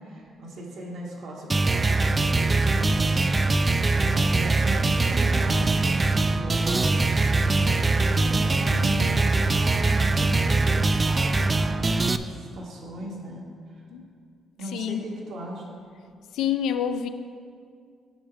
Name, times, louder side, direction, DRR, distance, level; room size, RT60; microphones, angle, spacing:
voice 1, 0.0-13.8 14.6-15.6, right 1 dB, 75° right, -3 dB, 1.7 m, -38 dB
sound 1, 1.5-12.2, right 3 dB, 25° right, 0.3 m, -22 dB
voice 2, 14.7-15.0 16.3-17.1, left 9 dB, 85° left, 9 dB, 0.4 m, -27 dB
10.0 x 6.1 x 3.4 m, 2.3 s
cardioid pair, 90°, 0 cm